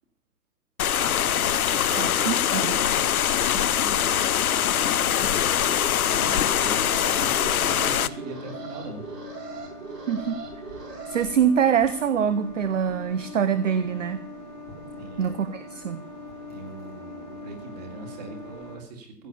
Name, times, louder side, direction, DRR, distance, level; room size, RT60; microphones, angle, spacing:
sound 1, 0.8-8.1, left 10 dB, 60° left, 0.6 m, -23 dB
voice 1, 1.2-9.1 15.0-15.3 16.5-19.3, right 2 dB, 25° right, 4 dB, 2.2 m, -41 dB
voice 2, 1.7-3.0 10.1-10.4 11.1-14.3 15.2-16.0, right 8 dB, 50° right, 14 dB, 0.7 m, -25 dB
sound 2, 2.5-18.7, left 2 dB, 5° right, 0.8 m, -42 dB
Alarm, 5.6-11.2, right 5 dB, 70° right, 4.7 m, -40 dB
15.5 x 6.6 x 8.4 m, 0.62 s
hypercardioid pair, 170°, 49 cm